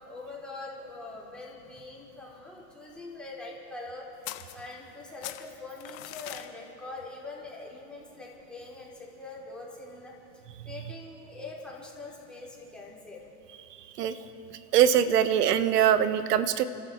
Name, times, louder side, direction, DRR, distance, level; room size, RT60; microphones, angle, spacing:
voice 1, 0.0-10.1 10.6-13.2, left 3 dB, ahead, -6 dB, 4.0 m, -43 dB
sound 1, 4.2-5.0 5.2-6.5, left 15 dB, 45° left, 1.0 m, -41 dB
voice 2, 14.7-16.6, right 9 dB, 70° right, 13 dB, 1.1 m, -22 dB
30.0 x 13.0 x 3.6 m, 2.7 s
hypercardioid pair, 100°, 48 cm